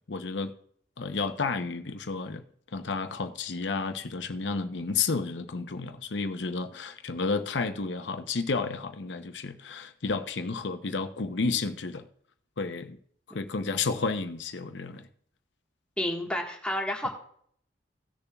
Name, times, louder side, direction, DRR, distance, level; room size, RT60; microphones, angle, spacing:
voice 1, 0.1-0.5 1.0-2.4 2.7-12.1 12.6-13.0 13.3-15.1, left 4 dB, 85° left, 0.7 m, -31 dB
voice 2, 16.0-17.1, left 1 dB, 5° left, 1.5 m, -30 dB
17.5 x 6.8 x 2.3 m
head